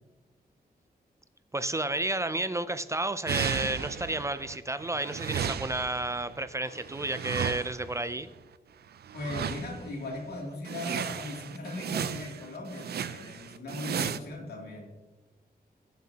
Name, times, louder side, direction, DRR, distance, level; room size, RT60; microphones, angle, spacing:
voice 1, 1.5-8.3, right 2 dB, 20° right, 13 dB, 0.4 m, -31 dB
sound 1, 3.3-4.6 4.8-8.0 9.0-9.9 10.3-10.4 10.6-14.2, right 8 dB, 80° right, 0.5 m, -35 dB
voice 2, 9.1-14.9, left 2 dB, 90° left, -1 dB, 2.7 m, -38 dB
20.5 x 7.3 x 2.9 m, 1.2 s
wide cardioid pair, 155°, 16 cm